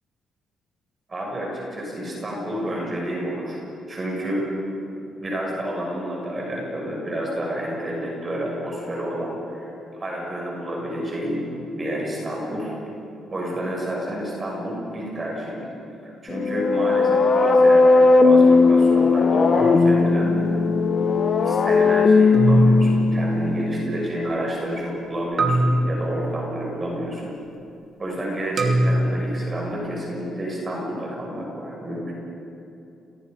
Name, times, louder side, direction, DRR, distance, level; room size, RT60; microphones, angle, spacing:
voice 1, 1.1-3.6 3.9-4.5 5.2-11.4 11.7-12.7 13.3-15.6 16.0-20.6 21.4-27.3 28.0-32.1, equal, 30° right, -2 dB, 6.9 m, -29 dB
sound 1, 16.3-24.1, left 3 dB, 45° left, 1.4 m, -17 dB
sound 2, 19.6-20.4 22.3-24.1 25.4-26.9 28.6-29.7, right 1 dB, 50° right, 2.6 m, -23 dB
29.0 x 21.5 x 5.5 m, 2.8 s
cardioid pair, 90°, 0 cm